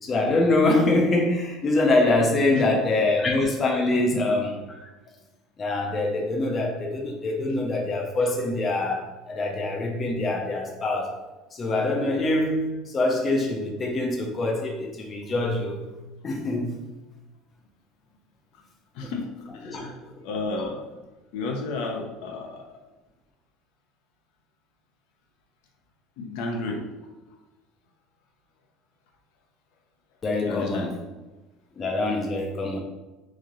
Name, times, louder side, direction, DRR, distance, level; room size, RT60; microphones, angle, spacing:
voice 1, 0.0-4.6 5.6-11.2 11.5-15.8 16.2-16.7 19.0-19.1 19.6-19.8 30.2-31.0 31.8-32.8, left 2 dB, 20° left, 0 dB, 0.5 m, -24 dB
voice 2, 19.0-19.9 20.2-20.8 21.3-22.6 26.2-26.8 30.5-30.9, left 3 dB, 70° left, 2 dB, 0.6 m, -32 dB
3.1 x 2.7 x 3.7 m, 1.1 s
cardioid pair, 160°, 0 cm